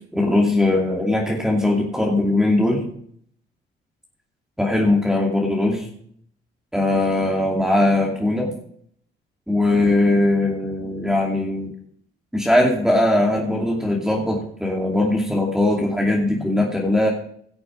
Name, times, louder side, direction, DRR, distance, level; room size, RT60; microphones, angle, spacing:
voice 1, 0.1-2.9 4.6-5.9 6.7-8.5 9.5-11.7 12.3-17.1, left 1 dB, 5° right, -1 dB, 2.6 m, -20 dB
17.5 x 6.9 x 5.1 m, 0.64 s
cardioid pair, 90°, 20 cm